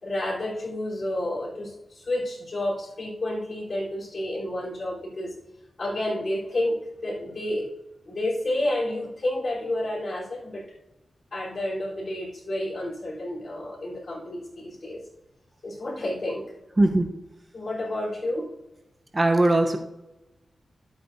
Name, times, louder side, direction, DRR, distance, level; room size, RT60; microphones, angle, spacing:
voice 1, 0.0-5.3 5.8-7.7 8.1-10.7 11.3-15.0 15.6-16.5 17.5-18.5, left 1 dB, 50° left, -5 dB, 3.7 m, -30 dB
voice 2, 16.8-17.1 19.1-19.8, right 2 dB, 25° right, 3 dB, 0.8 m, -20 dB
12.0 x 8.3 x 2.7 m, 0.99 s
wide cardioid pair, 105°, 0 cm